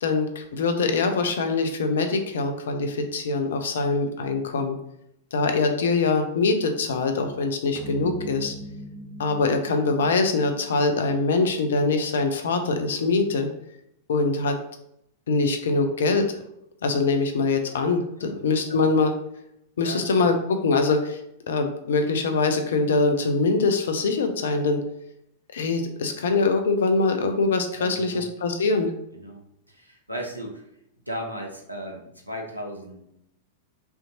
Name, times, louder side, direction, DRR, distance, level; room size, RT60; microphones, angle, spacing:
voice 1, 0.0-4.8 5.3-8.5 9.2-13.5 14.1-14.6 15.3-16.4 16.8-19.1 19.8-21.2 21.5-24.8 25.5-28.9, left 3 dB, 60° left, 6 dB, 0.6 m, -23 dB
sound 1, 7.8-12.4, right 1 dB, 25° right, 0.4 m, -41 dB
voice 2, 18.2-18.9 19.8-20.2 27.7-28.3 29.1-30.7 31.1-33.0, equal, 90° right, 1 dB, 0.9 m, -36 dB
5.7 x 2.9 x 2.7 m, 0.77 s
figure-of-eight pair, 95°, 0 cm